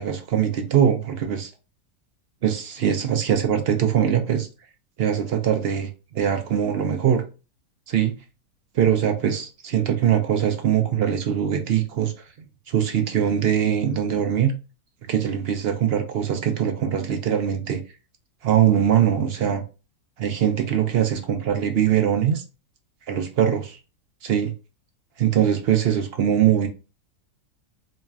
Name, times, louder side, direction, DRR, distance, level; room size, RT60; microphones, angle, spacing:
voice 1, 0.0-1.5 2.4-4.5 5.0-7.2 7.9-8.1 8.7-12.1 12.7-14.5 15.1-17.8 18.4-19.6 20.2-22.4 23.1-23.8 24.2-24.5 25.2-26.7, right 9 dB, 60° right, 0.6 m, -22 dB
4.2 x 3.1 x 2.3 m
omnidirectional pair, 1.6 m